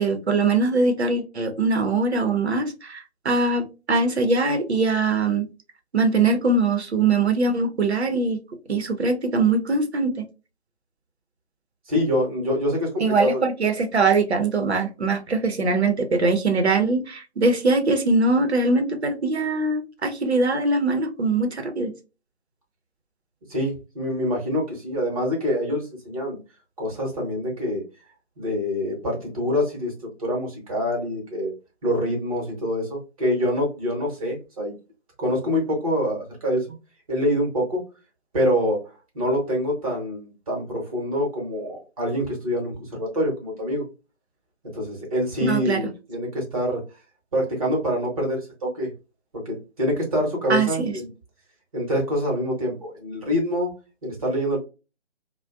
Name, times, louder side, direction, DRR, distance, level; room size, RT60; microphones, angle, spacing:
voice 1, 0.0-5.5 5.9-8.4 8.7-10.2 13.0-21.9 45.4-45.8 50.5-50.9, right 3 dB, 65° right, 5 dB, 0.7 m, -22 dB
voice 2, 11.9-13.4 23.5-26.4 26.8-27.8 28.4-29.9 30.2-31.5 31.8-34.7 35.2-36.7 37.1-37.8 38.3-38.8 39.1-43.8 44.7-46.8 47.3-48.9 49.3-51.1 51.7-53.7 54.0-54.6, equal, 30° right, -1 dB, 1.0 m, -25 dB
2.4 x 2.1 x 2.3 m, 0.30 s
figure-of-eight pair, 145°, 35 cm